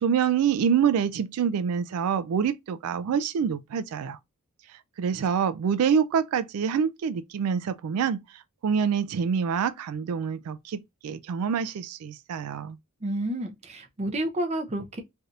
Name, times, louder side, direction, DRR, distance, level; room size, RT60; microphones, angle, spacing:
voice 1, 0.0-4.2 5.0-8.2 8.6-12.8, right 7 dB, 80° right, 0.3 m, -26 dB
voice 2, 13.0-15.0, right 1 dB, 30° right, 0.6 m, -30 dB
3.3 x 2.7 x 2.4 m
head